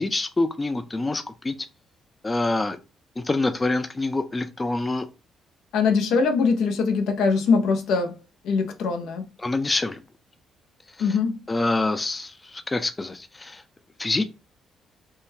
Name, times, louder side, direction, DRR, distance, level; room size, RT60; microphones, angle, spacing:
voice 1, 0.0-1.5 2.2-2.8 3.2-5.1 9.4-10.0 11.5-13.6 14.0-14.2, left 2 dB, 20° left, 0.4 m, -26 dB
voice 2, 5.7-8.2 8.4-9.2 11.0-11.4, left 5 dB, 85° left, 0.6 m, -22 dB
3.6 x 2.2 x 2.7 m
cardioid pair, 90°, 0 cm